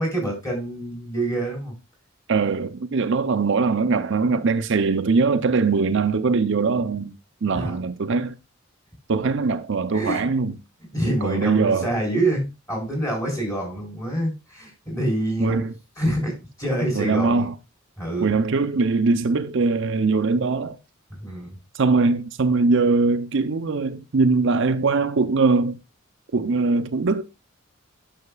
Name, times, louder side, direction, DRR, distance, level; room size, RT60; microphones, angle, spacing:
voice 1, 0.0-1.7 7.5-7.8 9.9-10.3 10.9-15.6 16.0-17.5 18.0-18.4 21.2-21.6, right 1 dB, 15° left, 4.6 m, -26 dB
voice 2, 2.3-7.1 7.4-8.4 9.1-10.6 11.2-11.9 15.4-15.7 17.0-17.5 18.2-20.8 21.7-25.8 26.3-27.2, right 4 dB, 65° right, 0.6 m, -21 dB
9.6 x 6.4 x 2.3 m
head